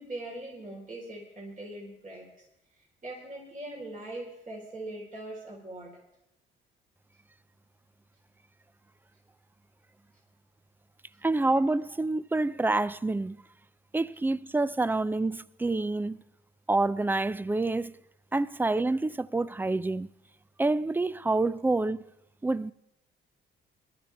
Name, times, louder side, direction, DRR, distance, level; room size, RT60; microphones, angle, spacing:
voice 1, 0.0-2.3 2.8-6.0, right 1 dB, 40° right, 4.1 m, -41 dB
voice 2, 11.2-13.4 13.9-16.2 16.7-17.9 18.3-20.1 20.6-22.0 22.4-22.7, right 2 dB, 10° right, 0.4 m, -27 dB
21.5 x 12.0 x 3.5 m
cardioid pair, 90°, 20 cm